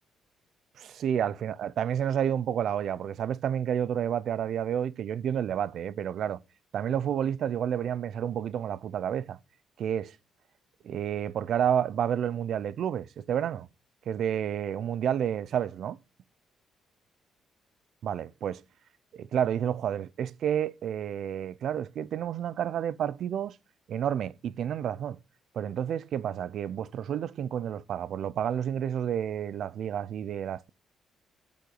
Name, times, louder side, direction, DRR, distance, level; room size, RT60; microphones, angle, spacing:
voice 1, 0.8-6.4 6.7-9.4 9.8-10.1 10.8-13.7 14.1-16.0 18.0-18.6 19.1-23.6 23.9-25.2 25.5-30.7, right 9 dB, 70° right, 0.6 m, -30 dB
8.6 x 6.3 x 6.8 m
cardioid pair, 90°, 0 cm